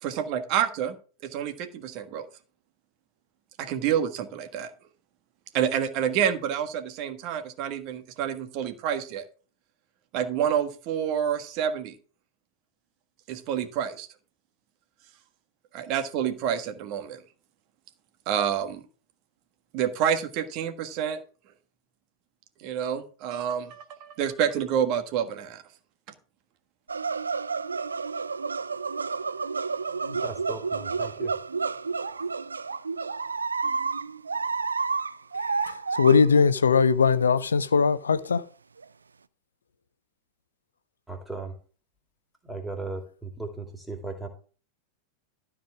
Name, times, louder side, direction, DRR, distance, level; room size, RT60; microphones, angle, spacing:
voice 1, 0.0-0.9 1.2-2.3 3.6-4.7 5.5-9.2 10.1-11.9 13.3-14.1 15.7-17.2 18.3-18.8 19.7-21.2 22.6-25.6, right 9 dB, 45° right, 1.6 m, -28 dB
sound 1, 26.9-36.4 36.7-36.8 37.2-37.3 37.8-37.9 38.2-38.3 38.8-38.9, right 4 dB, 75° right, 0.5 m, -30 dB
voice 2, 30.0-31.3 41.1-41.5 42.4-44.3, right 3 dB, 5° right, 2.7 m, -37 dB
voice 3, 35.7-38.4, left 5 dB, 70° left, 0.6 m, -20 dB
13.0 x 4.9 x 6.1 m
figure-of-eight pair, 90°, 0 cm